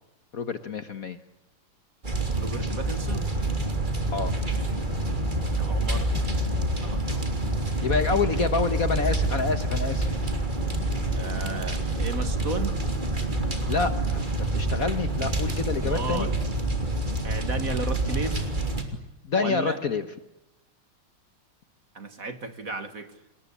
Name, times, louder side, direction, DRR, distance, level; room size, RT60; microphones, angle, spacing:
voice 1, 0.3-1.2 4.1-4.3 7.8-10.1 13.7-16.3 19.2-20.0, left 4 dB, 50° left, 11 dB, 1.4 m, -27 dB
sound 1, 2.0-18.8, right 2 dB, 20° right, 3.4 m, -27 dB
voice 2, 2.4-3.3 5.6-6.2 6.7-7.3 11.2-12.8 15.8-16.4 17.2-18.4 19.4-19.8 21.9-23.2, right 3 dB, 40° right, 10 dB, 2.2 m, -34 dB
27.5 x 20.5 x 8.5 m, 0.94 s
omnidirectional pair, 2.3 m